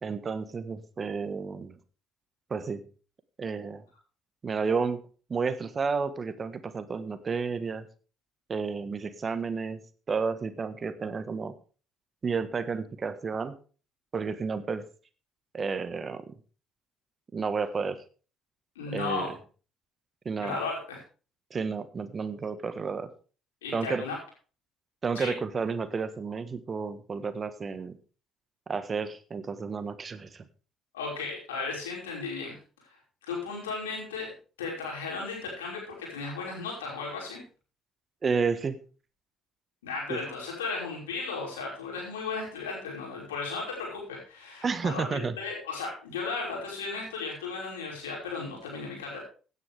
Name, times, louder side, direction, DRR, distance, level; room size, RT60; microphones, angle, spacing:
voice 1, 0.0-1.7 2.5-2.8 3.4-3.8 4.4-5.0 5.3-7.9 8.5-9.8 10.1-11.5 12.2-13.6 14.1-14.8 15.5-16.3 17.3-18.0 18.9-19.3 20.2-20.6 21.5-23.1 23.7-24.0 25.0-27.9 28.7-30.4 38.2-38.8 40.1-40.2 44.6-45.3, right 5 dB, 40° right, 12 dB, 1.5 m, -31 dB
voice 2, 18.8-19.3 20.3-21.0 23.6-24.2 25.1-25.4 30.9-32.6 33.3-34.3 34.6-37.4 39.8-49.2, left 4 dB, 85° left, -2 dB, 5.3 m, -35 dB
16.0 x 9.7 x 3.5 m, 0.37 s
hypercardioid pair, 50°, 0 cm